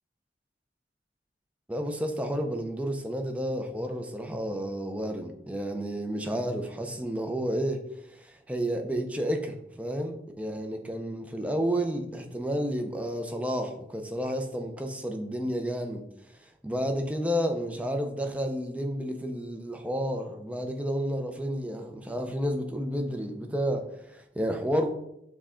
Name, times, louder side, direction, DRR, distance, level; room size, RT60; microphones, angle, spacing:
voice 1, 1.7-7.8 8.2-16.0 16.6-24.9, equal, 5° right, 4 dB, 0.4 m, -31 dB
6.1 x 2.2 x 3.6 m, 0.79 s
head